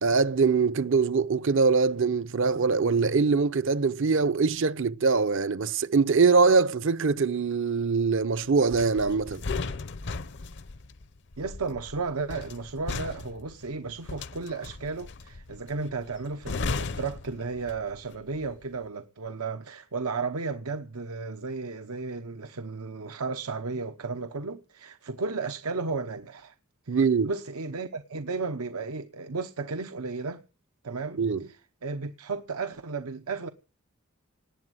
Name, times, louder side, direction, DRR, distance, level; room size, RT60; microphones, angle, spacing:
voice 1, 0.0-9.4 26.9-27.3 31.2-31.4, right 4 dB, 60° right, 0.7 m, -23 dB
sound 1, 8.7-18.1 18.3-18.6, left 3 dB, 55° left, 0.7 m, -36 dB
voice 2, 11.4-26.6 26.8-30.4 30.8-33.5, right 4 dB, 90° right, 0.9 m, -34 dB
19.0 x 8.1 x 7.8 m
head